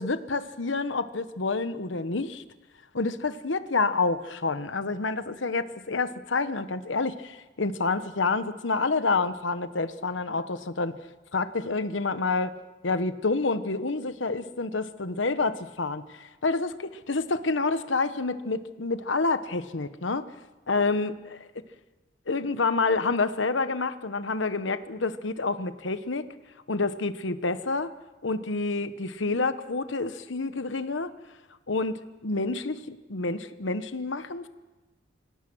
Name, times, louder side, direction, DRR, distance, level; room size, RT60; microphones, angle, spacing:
voice 1, 0.0-2.4 2.9-10.9 11.3-12.5 12.8-20.3 20.7-21.5 22.3-26.3 26.7-27.9 28.2-31.1 31.7-34.5, left 3 dB, 75° left, 12 dB, 1.1 m, -28 dB
25.5 x 17.0 x 6.3 m, 1.2 s
head